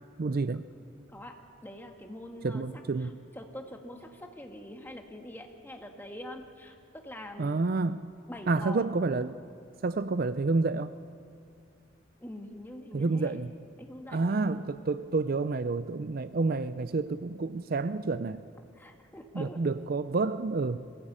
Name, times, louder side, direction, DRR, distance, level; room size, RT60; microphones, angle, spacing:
voice 1, 0.2-0.6 2.4-3.1 7.4-8.0 8.5-9.4 9.8-10.9 12.9-13.5 14.1-18.4 19.3-20.8, right 3 dB, 50° right, 13 dB, 0.5 m, -29 dB
voice 2, 1.6-2.6 3.0-3.1 3.3-7.6 8.3-8.8 12.2-13.3 13.8-14.2 18.7-19.6, left 1 dB, 10° left, 3 dB, 1.6 m, -44 dB
21.5 x 16.0 x 8.7 m, 2.3 s
head